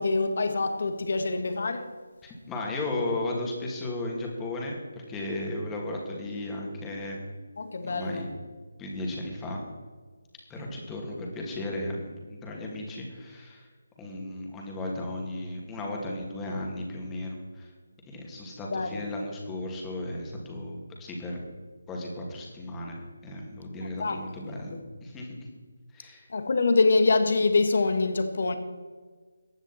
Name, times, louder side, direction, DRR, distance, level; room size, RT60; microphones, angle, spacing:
voice 1, 0.0-1.9 7.6-8.3 18.7-19.0 24.0-24.8 26.3-28.6, left 3 dB, 55° left, 1.6 m, -25 dB
voice 2, 2.2-7.2 7.8-8.3 8.8-9.6 10.5-13.7 14.0-17.7 18.1-21.4 21.9-23.0 23.2-25.3 25.9-26.3, left 1 dB, 10° left, 2.5 m, -35 dB
15.5 x 10.0 x 4.4 m
figure-of-eight pair, 155°, 0 cm